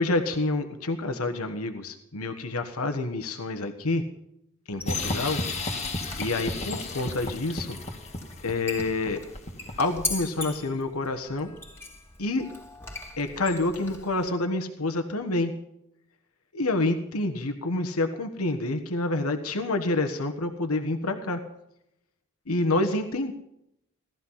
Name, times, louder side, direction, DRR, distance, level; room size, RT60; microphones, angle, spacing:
voice 1, 0.0-4.0 4.7-5.4 6.2-7.8 8.4-9.2 9.8-11.5 12.2-12.4 13.2-15.5 16.5-21.4 22.5-23.3, left 2 dB, 85° left, 6 dB, 1.4 m, -28 dB
Squeak, 4.7-14.3, left 3 dB, 10° left, 2.2 m, -40 dB
sound 1, 4.9-10.0, left 2 dB, 30° left, 1.9 m, -33 dB
18.0 x 13.5 x 5.7 m, 0.80 s
head